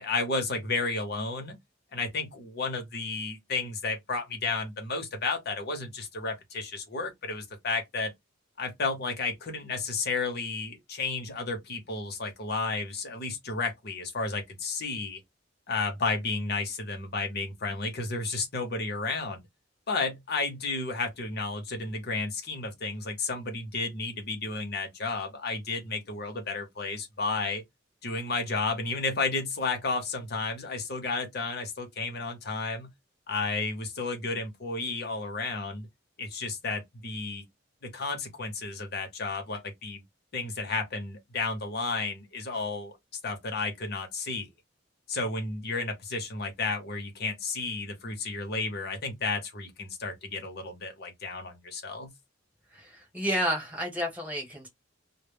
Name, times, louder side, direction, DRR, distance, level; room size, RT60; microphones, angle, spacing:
voice 1, 0.0-1.6 1.9-8.1 8.6-15.2 15.7-19.4 19.9-27.6 28.0-32.9 33.3-35.9 36.2-37.4 37.8-40.0 40.3-42.9 43.2-44.5 45.1-52.1, left 3 dB, 55° left, 0.8 m, -32 dB
voice 2, 52.7-54.7, equal, 10° right, 1.0 m, -31 dB
2.1 x 2.1 x 3.3 m
head